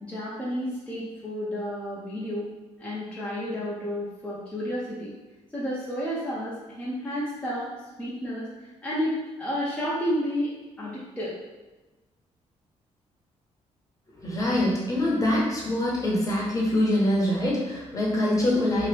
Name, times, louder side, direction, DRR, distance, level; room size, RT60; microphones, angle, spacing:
voice 1, 0.0-2.5 2.8-5.2 5.5-7.7 8.0-10.5 10.8-11.4, equal, 10° left, -8 dB, 0.7 m, -31 dB
voice 2, 14.2-18.9, left 1 dB, 30° left, -4 dB, 1.0 m, -24 dB
2.8 x 2.8 x 3.4 m, 1.1 s
cardioid pair, 120°, 12 cm